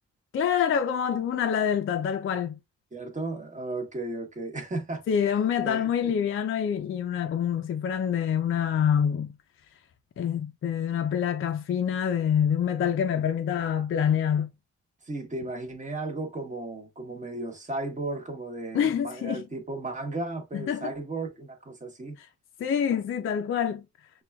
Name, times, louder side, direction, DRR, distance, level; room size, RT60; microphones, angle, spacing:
voice 1, 0.3-2.5 5.1-9.3 10.2-14.5 18.7-19.4 20.5-20.9 22.2-22.3 22.6-23.8, left 8 dB, 45° left, 0.4 m, -26 dB
voice 2, 2.9-5.0 5.6-6.1 15.1-22.2, right 2 dB, 25° right, 1.0 m, -35 dB
5.9 x 2.3 x 2.2 m
cardioid pair, 105°, 29 cm